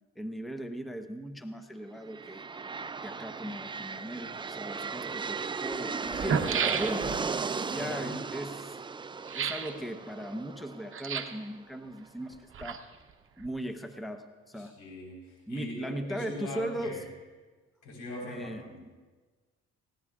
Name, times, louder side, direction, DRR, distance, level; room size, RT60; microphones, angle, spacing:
voice 1, 0.2-2.4 3.0-7.2 7.7-8.7 9.3-12.9 13.4-14.8 15.5-16.9 18.2-18.9, right 1 dB, ahead, 6 dB, 0.9 m, -38 dB
sound 1, 2.0-11.8, right 5 dB, 15° right, 0.3 m, -36 dB
sound 2, 5.7-5.8 6.1-7.3 9.3-9.8 10.9-11.5 12.3-13.1 13.4-13.5, right 7 dB, 45° right, 0.9 m, -32 dB
voice 2, 7.7-8.2 14.6-17.0 17.8-18.8, left 1 dB, 90° left, -1 dB, 4.3 m, -41 dB
19.5 x 16.0 x 2.4 m, 1.3 s
cardioid pair, 90°, 30 cm